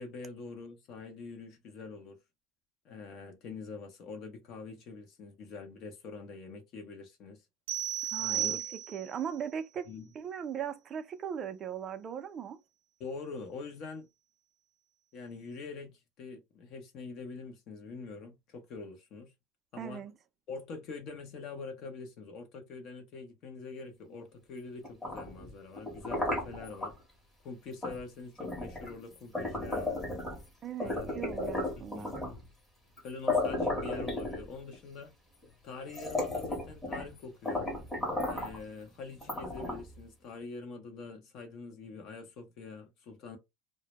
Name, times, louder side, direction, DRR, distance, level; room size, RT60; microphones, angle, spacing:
voice 1, 0.0-2.2 2.8-7.4 8.2-8.6 9.9-10.1 13.0-14.1 15.1-19.3 19.7-20.0 20.5-26.9 27.4-30.0 30.8-31.1 31.8-32.2 33.0-35.1 35.6-37.7 38.2-43.4, left 4 dB, 45° left, 0.7 m, -44 dB
sound 1, 7.7-9.2, right 11 dB, 80° right, 0.5 m, -34 dB
voice 2, 8.1-9.9 10.2-12.6 19.8-20.1 30.6-32.2, right 8 dB, 30° right, 0.4 m, -39 dB
sound 2, 24.8-26.9 27.8-28.0 28.4-30.5 30.8-32.4 33.0-33.1 33.3-34.8 35.4-35.5 35.9-37.1 37.4-38.6 39.2-40.0, left 2 dB, 10° left, 0.9 m, -34 dB
2.1 x 2.0 x 2.9 m
supercardioid pair, 145°, 0 cm